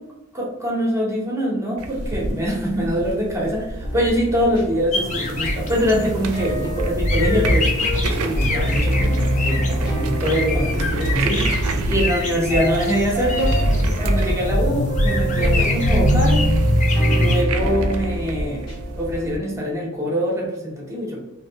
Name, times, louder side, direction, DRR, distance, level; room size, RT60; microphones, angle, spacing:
voice 1, 0.3-7.7 8.0-11.5 11.9-13.6 14.0-16.5 17.1-18.6 19.0-21.2, equal, 15° right, -3 dB, 0.8 m, -23 dB
sound 1, 1.8-19.4, right 2 dB, 85° right, 0.4 m, -31 dB
sound 2, 3.8-19.3, equal, 60° left, 1.3 m, -24 dB
sound 3, 4.9-17.4, left 2 dB, 35° left, 0.5 m, -25 dB
3.2 x 2.6 x 2.7 m, 0.94 s
head